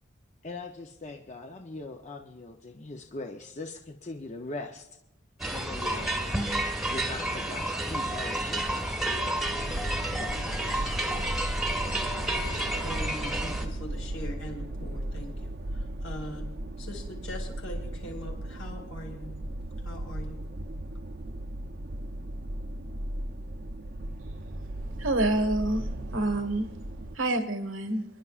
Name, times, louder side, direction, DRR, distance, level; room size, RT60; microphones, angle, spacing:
voice 1, 0.4-4.9 5.5-6.2 6.8-9.0 10.2-10.8, left 2 dB, 35° left, 3 dB, 0.6 m, -41 dB
sound 1, 5.4-13.7, right 1 dB, ahead, 1.2 m, -30 dB
sound 2, 9.4-27.2, right 1 dB, 50° right, 0.7 m, -36 dB
voice 2, 12.5-16.5 16.8-19.3 19.8-20.4, left 1 dB, 75° left, 1 dB, 4.4 m, -41 dB
voice 3, 25.0-25.9 26.1-26.7 27.1-28.0, right 2 dB, 85° right, 7 dB, 1.4 m, -27 dB
27.5 x 11.0 x 2.4 m, 0.87 s
head